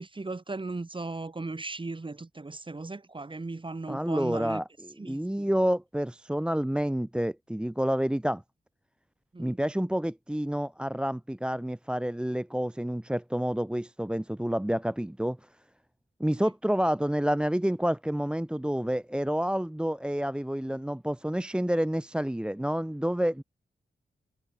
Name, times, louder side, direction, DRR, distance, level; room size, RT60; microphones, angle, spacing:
voice 1, 0.0-4.6 5.0-5.5 9.3-9.6 16.3-16.5, right 3 dB, 30° right, 4.2 m, -37 dB
voice 2, 3.9-8.4 9.4-15.4 16.2-23.4, equal, 5° right, 1.1 m, -29 dB
wide cardioid pair, 110°, 18 cm